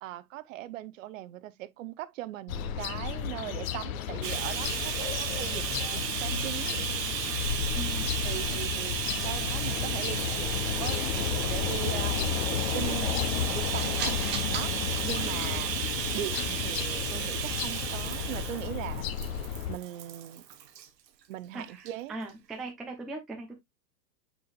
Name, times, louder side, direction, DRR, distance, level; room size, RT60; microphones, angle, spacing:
voice 1, 0.0-6.8 8.2-14.2 14.5-14.7 15.0-15.7 16.1-19.3 19.7-20.5 21.3-22.1, right 14 dB, 50° right, 0.7 m, -40 dB
sound 1, 2.5-19.8, left 9 dB, 55° left, 1.1 m, -32 dB
Bathtub (filling or washing), 4.2-20.9 21.8-21.9 22.3-22.4, right 9 dB, 85° right, 1.1 m, -34 dB
voice 2, 7.7-8.1 21.5-23.5, right 2 dB, ahead, 0.4 m, -40 dB
sound 2, 11.7-19.1, right 5 dB, 20° right, 0.8 m, -42 dB
7.1 x 5.9 x 2.3 m
hypercardioid pair, 125°, 49 cm